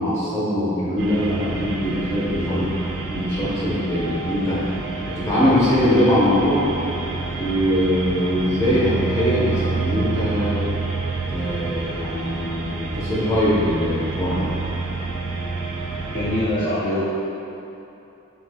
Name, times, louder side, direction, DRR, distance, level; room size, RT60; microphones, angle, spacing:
voice 1, 0.0-2.7 3.1-4.6 5.1-6.6 7.3-10.7 11.3-14.5, equal, 15° left, -10 dB, 1.1 m, -22 dB
sound 1, 1.0-16.5, right 3 dB, 65° right, 0.5 m, -28 dB
voice 2, 16.1-17.0, left 1 dB, 35° left, -10 dB, 0.6 m, -23 dB
4.7 x 4.3 x 2.3 m, 2.9 s
head